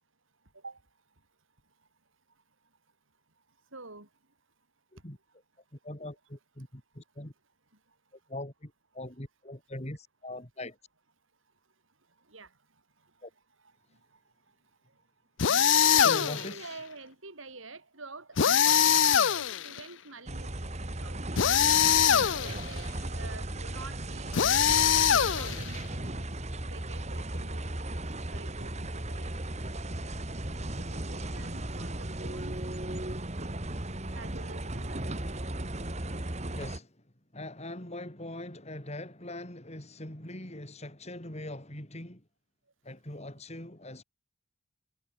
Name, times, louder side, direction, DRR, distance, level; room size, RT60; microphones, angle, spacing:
voice 1, 3.7-4.1 12.2-12.5 13.0-13.1 13.6-14.2 14.9-15.0 15.9-21.2 22.4-24.4 25.2-26.3 26.6-28.1 28.3-29.3 30.8-32.6 34.1-35.3, right 3 dB, 75° right, 5.3 m, -47 dB
voice 2, 5.8-7.3 8.3-10.8 13.2-13.3 15.9-16.7 36.5-36.9 37.3-42.2 42.8-44.0, left 1 dB, 30° left, 4.3 m, -41 dB
sound 1, 15.4-16.5 18.4-19.8 21.4-22.7 24.3-25.8, left 8 dB, 65° left, 0.6 m, -23 dB
sound 2, 20.3-36.8, right 1 dB, 35° right, 2.4 m, -36 dB
head